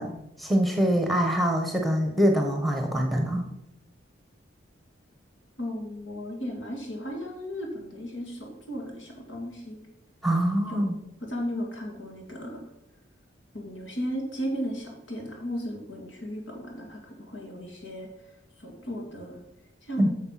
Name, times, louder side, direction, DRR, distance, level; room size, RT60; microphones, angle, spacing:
voice 1, 0.0-3.5 10.2-11.0 20.0-20.1, equal, ahead, 3 dB, 1.1 m, -24 dB
voice 2, 5.6-9.8 10.7-10.9 11.2-12.6 13.5-18.1 18.6-19.4 19.8-20.1, equal, 70° left, 1 dB, 2.4 m, -35 dB
8.9 x 6.7 x 5.8 m, 0.85 s
head